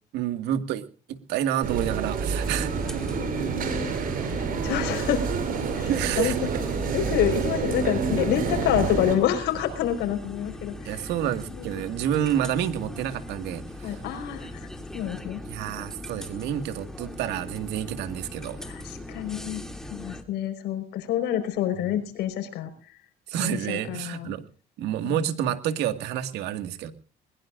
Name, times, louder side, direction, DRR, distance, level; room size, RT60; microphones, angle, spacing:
voice 1, 0.1-0.8 1.1-2.7 5.9-6.4 10.8-14.0 15.5-18.6 23.3-24.4 24.8-26.9, right 10 dB, 90° right, 10 dB, 2.0 m, -29 dB
sound 1, 1.6-9.2, right 5 dB, 60° right, 6.5 m, -28 dB
sound 2, 2.4-20.2, left 1 dB, 5° left, 2.7 m, -40 dB
voice 2, 3.2-4.0 4.3-5.2 5.7-6.5 6.9-11.1 11.5-11.6 13.8-15.4 18.6-22.7 23.4-24.3 25.0-25.2, left 10 dB, 85° left, 7 dB, 4.9 m, -28 dB
21.5 x 21.0 x 2.6 m, 0.39 s
cardioid pair, 110°, 17 cm